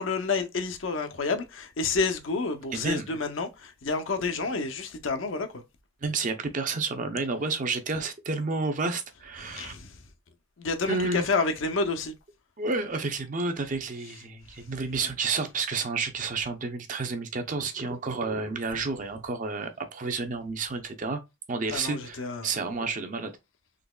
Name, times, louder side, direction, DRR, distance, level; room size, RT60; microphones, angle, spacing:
voice 1, 0.0-5.6 9.4-10.0 10.6-12.1 14.5-14.6 15.0-15.1 21.7-22.5, left 4 dB, 85° left, 0.6 m, -29 dB
voice 2, 2.7-3.1 6.0-9.7 10.9-11.3 12.6-21.2 21.5-23.3, right 3 dB, 45° right, 0.6 m, -30 dB
3.9 x 2.9 x 2.3 m
head